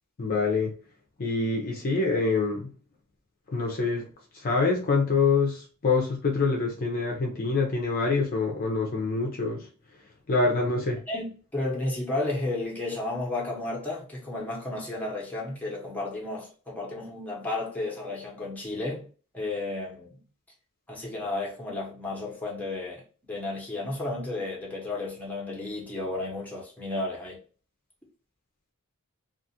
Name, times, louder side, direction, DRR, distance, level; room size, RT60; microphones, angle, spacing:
voice 1, 0.2-0.7 1.2-2.7 3.5-4.1 4.3-9.6 10.3-11.0, left 4 dB, 40° left, 0.5 m, -25 dB
voice 2, 11.1-19.1 19.3-20.2 20.9-23.0 23.3-27.4, left 2 dB, 5° left, 0.9 m, -33 dB
2.4 x 2.4 x 2.7 m
head